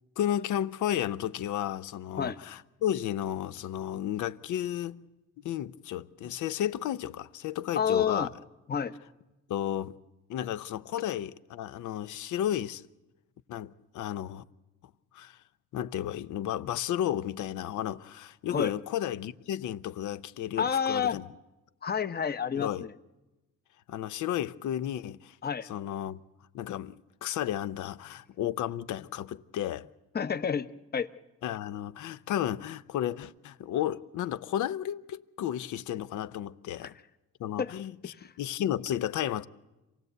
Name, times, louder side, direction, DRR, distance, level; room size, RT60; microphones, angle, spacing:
voice 1, 0.2-5.0 5.4-8.3 9.5-9.9 10.3-12.8 13.5-14.4 15.1-15.4 15.7-21.2 22.5-22.9 23.9-25.4 25.6-26.2 26.5-29.9 31.4-36.9 37.4-39.5, left 11 dB, 75° left, 0.7 m, -33 dB
voice 2, 7.8-8.3 8.7-9.0 18.5-18.7 20.6-21.2 21.8-22.9 25.4-25.7 30.1-30.7 30.9-31.1 37.6-37.7 38.2-38.3, left 7 dB, 30° left, 0.9 m, -29 dB
27.0 x 17.5 x 8.1 m
cardioid pair, 90°, 30 cm